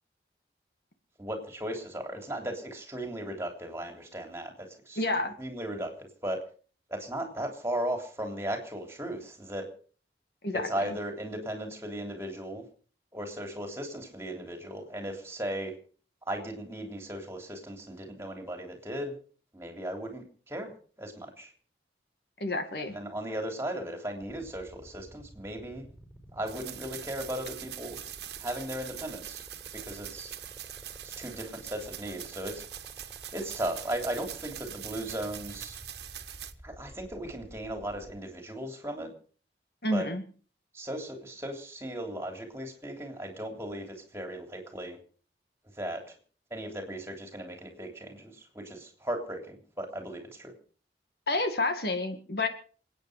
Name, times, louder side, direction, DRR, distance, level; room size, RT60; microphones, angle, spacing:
voice 1, 1.2-5.0 5.4-5.9 6.2-6.4 6.9-9.7 10.5-12.6 13.1-15.7 16.3-19.1 19.5-21.5 22.8-25.8 26.3-28.0 28.4-29.4 29.7-30.3 31.0-32.6 33.3-35.8 36.6-39.1 39.9-40.1 40.7-45.0 45.8-46.0 46.5-50.5, right 1 dB, 15° right, 4 dB, 3.3 m, -37 dB
voice 2, 5.0-5.3 10.4-11.0 22.4-22.9 39.8-40.2 51.3-52.5, left 2 dB, 65° left, 7 dB, 2.2 m, -29 dB
sound 1, 24.2-38.2, equal, 5° left, 5.2 m, -51 dB
sound 2, 26.5-36.5, right 11 dB, 75° right, 1.5 m, -43 dB
28.0 x 9.3 x 5.1 m, 0.42 s
head